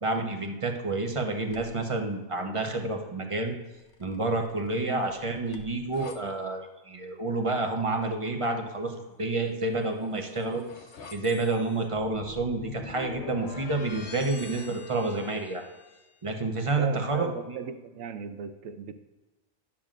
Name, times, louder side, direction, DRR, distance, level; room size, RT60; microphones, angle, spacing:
voice 1, 0.0-3.5 4.0-10.6 11.1-15.6 16.2-17.6, right 2 dB, 30° right, 3 dB, 0.7 m, -29 dB
sound 1, 1.5-1.9 3.8-6.2 9.7-16.1, left 4 dB, 60° left, 1.0 m, -46 dB
voice 2, 16.8-18.9, right 7 dB, 80° right, 9 dB, 1.0 m, -36 dB
10.5 x 7.2 x 2.5 m, 1.1 s
omnidirectional pair, 1.4 m